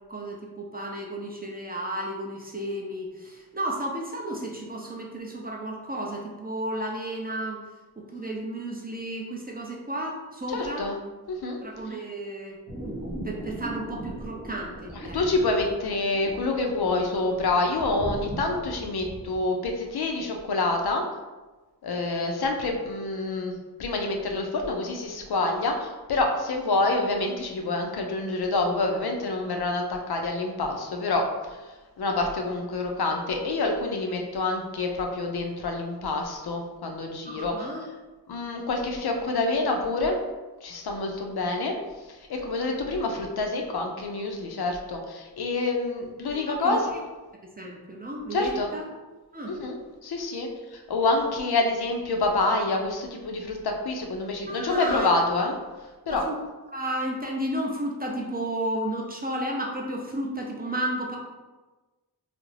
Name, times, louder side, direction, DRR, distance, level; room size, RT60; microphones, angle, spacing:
voice 1, 0.0-7.6 8.0-10.9 11.6-12.6 13.2-15.5 37.2-37.9 46.3-47.0 47.6-48.8 49.3-49.6 54.5-55.1 56.1-56.4 56.7-61.2, right 1 dB, 25° right, -1 dB, 0.4 m, -33 dB
voice 2, 10.5-11.0 11.3-11.6 11.9-12.0 14.9-21.0 21.8-23.5 23.8-37.7 38.3-40.2 40.6-41.8 42.1-46.8 48.3-48.7 49.4-55.6 56.1-56.2, left 2 dB, 70° left, 2 dB, 0.5 m, -27 dB
sound 1, 12.7-19.4, right 1 dB, 45° right, 0.8 m, -38 dB
2.4 x 2.0 x 3.1 m, 1.2 s
wide cardioid pair, 55°, 40 cm